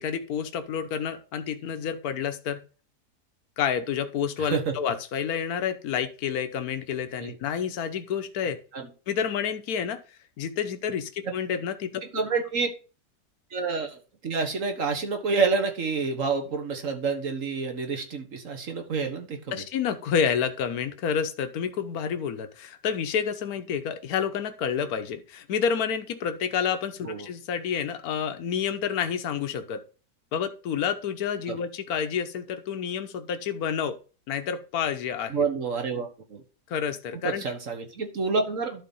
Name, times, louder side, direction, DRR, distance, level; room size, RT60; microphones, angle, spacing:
voice 1, 0.0-2.6 3.6-8.6 9.1-10.0 10.4-12.0 19.5-29.8 30.3-34.0 34.3-35.4 36.7-37.4, left 7 dB, 65° left, 9 dB, 1.4 m, -29 dB
voice 2, 4.4-4.7 7.2-7.4 8.7-8.9 11.2-11.3 12.1-12.7 13.5-19.6 27.0-27.3 31.5-31.6 35.3-36.4 37.2-38.8, right 4 dB, 50° right, 5 dB, 1.7 m, -28 dB
11.5 x 4.2 x 5.5 m, 0.35 s
omnidirectional pair, 1.8 m